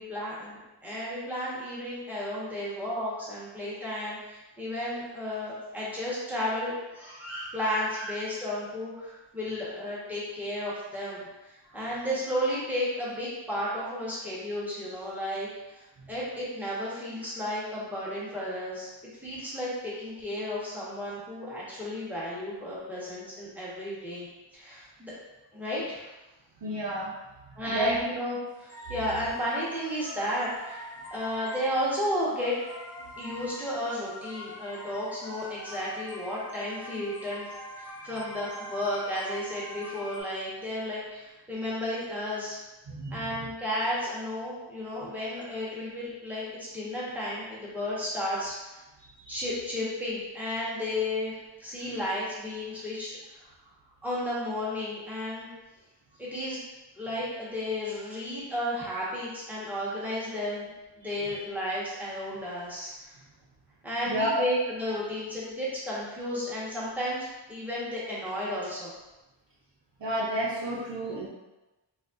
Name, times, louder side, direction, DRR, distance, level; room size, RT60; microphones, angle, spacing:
voice 1, 0.0-18.9 19.2-24.3 24.5-25.1 25.5-26.1 27.5-32.5 33.2-42.6 43.1-48.8 49.3-51.3 51.6-53.1 53.3-53.5 54.0-55.5 56.2-56.6 57.0-60.7 61.0-63.1 63.8-68.9, left 1 dB, 5° right, -8 dB, 1.3 m, -33 dB
voice 2, 26.6-27.2 27.5-28.0 28.8-28.9 42.9-43.5 49.0-49.5 61.2-61.4 64.1-64.4 70.0-71.3, right 1 dB, 65° right, -5 dB, 0.7 m, -31 dB
sound 1, 28.7-40.2, left 1 dB, 30° left, 0.6 m, -43 dB
4.1 x 2.3 x 2.6 m, 1.1 s
wide cardioid pair, 50°, 46 cm